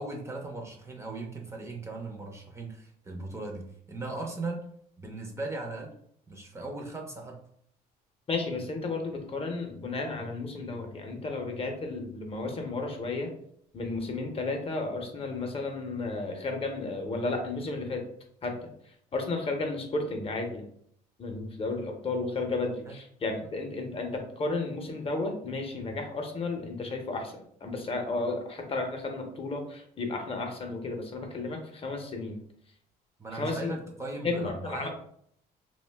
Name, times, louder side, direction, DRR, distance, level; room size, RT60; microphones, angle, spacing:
voice 1, 0.0-4.7 5.0-5.9 6.3-7.4 22.8-23.0 33.2-34.9, right 2 dB, 15° right, 0 dB, 0.5 m, -38 dB
voice 2, 8.3-13.3 13.7-18.0 18.4-18.5 19.1-20.7 21.2-27.3 27.6-32.4 33.3-33.7 34.2-34.9, left 3 dB, 35° left, 3 dB, 0.6 m, -33 dB
2.4 x 2.1 x 3.3 m, 0.66 s
cardioid pair, 110°, 17 cm